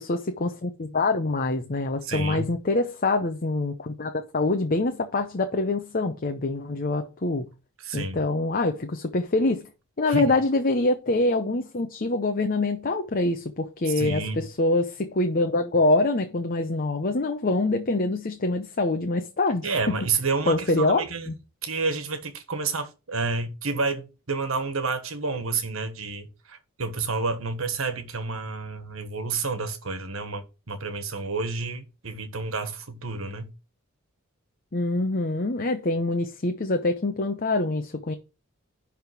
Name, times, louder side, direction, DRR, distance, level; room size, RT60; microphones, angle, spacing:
voice 1, 0.0-7.5 7.9-9.7 10.0-20.0 20.5-21.4 34.7-38.1, left 2 dB, 45° left, 0.8 m, -25 dB
voice 2, 2.0-2.5 7.8-8.2 10.1-10.3 13.9-14.5 19.6-21.3 21.6-33.5, right 4 dB, 75° right, 1.5 m, -30 dB
10.5 x 3.6 x 6.0 m
head